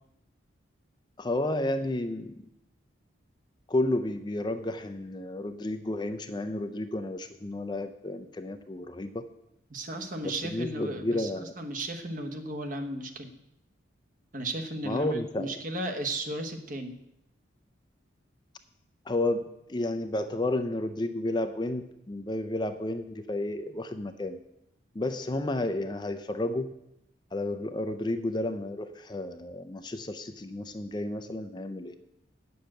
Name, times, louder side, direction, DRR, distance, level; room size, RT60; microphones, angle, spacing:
voice 1, 1.2-2.4 3.7-9.3 10.2-11.5 14.8-15.5 19.1-24.4 24.9-26.7 27.3-32.0, left 1 dB, 20° left, 9 dB, 0.4 m, -31 dB
voice 2, 9.7-11.3 11.6-13.3 14.3-17.0, right 1 dB, 45° right, 5 dB, 1.1 m, -35 dB
8.7 x 7.0 x 7.7 m, 0.82 s
head